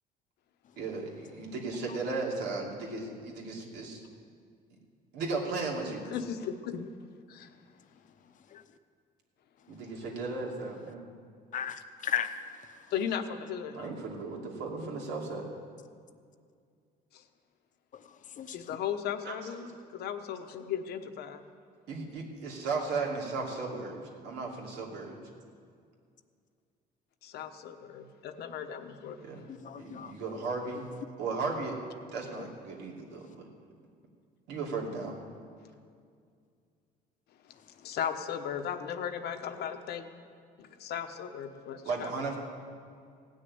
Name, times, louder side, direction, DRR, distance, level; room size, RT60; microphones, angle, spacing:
voice 1, 0.8-4.0 5.1-6.0 9.7-11.0 13.8-15.5 19.2-19.3 19.6-19.7 21.9-24.0 24.2-25.2 29.2-29.4 29.8-30.9 31.2-31.8 32.1-33.3 34.5-35.2 41.8-42.4, right 3 dB, 85° right, 2.8 m, -35 dB
voice 2, 6.1-6.8 7.3-7.5 12.9-13.9 17.1-17.2 18.5-21.4 27.2-29.2 37.8-40.1 40.6-42.1, left 8 dB, 70° left, 1.0 m, -36 dB
voice 3, 8.2-8.6 9.6-10.2 11.5-12.9 17.9-18.8 29.5-30.2 32.4-32.5 33.1-33.4 37.5-37.9, left 9 dB, 50° left, 0.9 m, -39 dB
16.5 x 6.5 x 9.6 m
cardioid pair, 110°, 17 cm